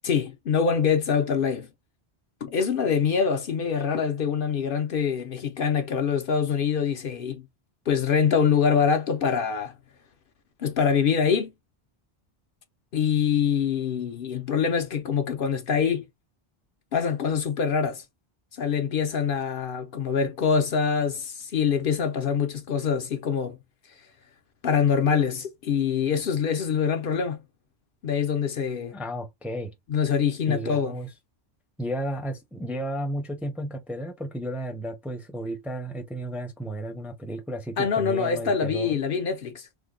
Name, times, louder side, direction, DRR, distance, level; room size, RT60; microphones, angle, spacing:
voice 1, 0.0-1.7 2.4-7.4 7.9-9.7 10.6-11.5 12.9-16.0 16.9-18.0 18.6-23.6 24.6-27.4 28.0-28.9 29.9-30.9 37.8-39.7, left 6 dB, 60° left, 0.7 m, -24 dB
voice 2, 28.9-29.7 30.5-31.1 31.8-39.0, right 1 dB, ahead, 0.5 m, -33 dB
3.5 x 2.1 x 3.7 m
omnidirectional pair, 1.1 m